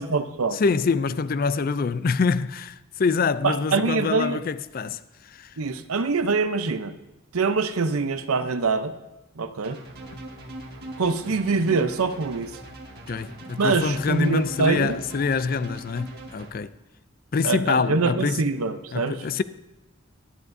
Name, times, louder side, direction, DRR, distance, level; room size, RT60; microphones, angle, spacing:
voice 1, 0.0-0.6 3.4-4.4 5.6-6.9 7.3-8.9 9.4-9.8 11.0-12.6 13.6-15.0 17.4-19.2, right 4 dB, 90° right, 0.7 m, -24 dB
voice 2, 0.5-5.5 13.1-16.7 17.3-18.4 18.9-19.4, left 4 dB, 40° left, 0.4 m, -25 dB
sound 1, 9.6-16.5, right 1 dB, 45° right, 1.9 m, -41 dB
18.5 x 11.0 x 2.7 m
head